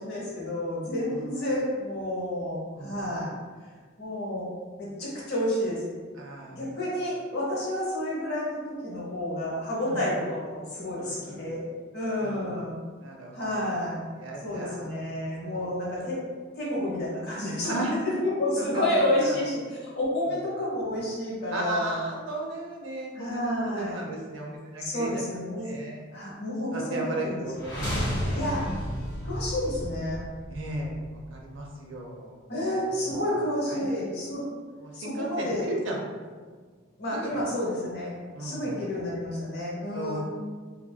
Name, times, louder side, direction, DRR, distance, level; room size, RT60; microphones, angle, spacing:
voice 1, 0.0-3.3 4.0-4.5 4.8-6.1 6.5-11.7 11.9-12.8 13.3-14.0 14.4-16.2 16.5-17.7 18.0-22.0 23.1-24.0 24.8-25.7 26.1-27.3 28.3-28.6 29.2-30.2 32.5-34.5 34.9-35.7 37.0-38.1 38.4-40.2, left 1 dB, 55° left, -5 dB, 0.9 m, -30 dB
voice 2, 2.8-3.2 6.1-6.6 9.8-10.0 11.0-11.4 12.2-12.5 13.0-13.9 14.2-15.7 17.6-17.9 18.6-18.8 19.2-19.4 21.5-25.2 25.6-26.0 26.7-28.8 30.5-32.4 32.8-33.8 34.8-36.1 37.1-37.4 38.3-38.8 39.9-40.2, right 1 dB, 65° right, -1 dB, 0.5 m, -36 dB
sound 1, 27.5-31.5, equal, 20° left, 1.1 m, -32 dB
2.9 x 2.3 x 2.2 m, 1.5 s
head